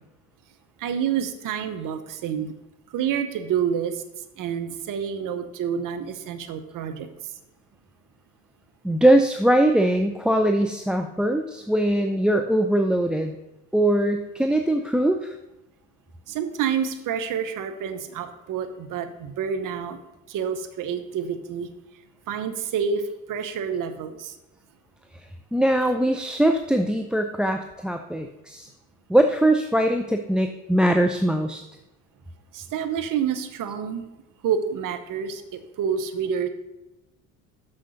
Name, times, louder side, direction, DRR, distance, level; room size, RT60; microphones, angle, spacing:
voice 1, 0.8-2.5 2.9-7.3 16.3-20.0 20.3-21.7 22.3-24.4 32.5-34.0 34.4-36.5, right 7 dB, 55° right, 9 dB, 1.0 m, -28 dB
voice 2, 8.8-13.4 13.7-15.4 25.5-28.7 29.1-31.6, right 1 dB, ahead, 6 dB, 0.5 m, -21 dB
6.5 x 6.2 x 5.7 m, 0.96 s
hypercardioid pair, 65°, 39 cm